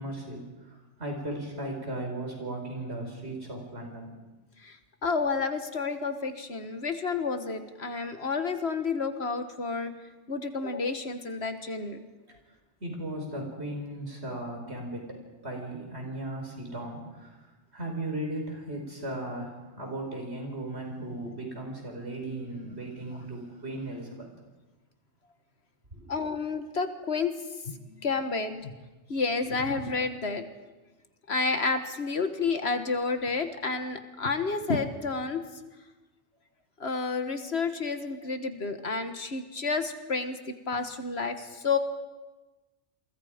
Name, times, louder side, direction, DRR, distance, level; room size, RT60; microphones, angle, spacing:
voice 1, 0.0-4.1 12.8-15.2 15.4-24.3 25.9-26.1, right 1 dB, 60° right, 1 dB, 5.4 m, -37 dB
voice 2, 4.6-9.9 10.3-12.0 26.1-27.3 27.7-28.7 29.1-30.4 31.3-35.4 36.8-40.4 40.7-41.8, left 4 dB, 60° left, 8 dB, 1.8 m, -30 dB
29.0 x 23.0 x 5.2 m, 1.2 s
omnidirectional pair, 1.2 m